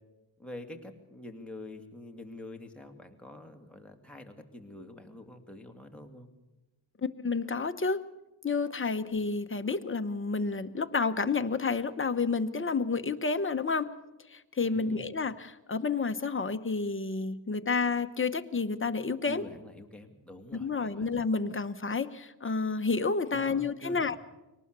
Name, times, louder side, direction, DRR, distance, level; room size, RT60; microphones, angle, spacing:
voice 1, 0.4-6.3 14.6-15.1 19.3-21.1 23.3-24.2, left 2 dB, ahead, 2 dB, 2.5 m, -46 dB
voice 2, 7.0-8.0 8.4-13.9 14.3-19.4 20.5-24.2, left 4 dB, 25° left, 8 dB, 1.0 m, -30 dB
23.0 x 19.0 x 6.8 m, 1.0 s
wide cardioid pair, 90°, 48 cm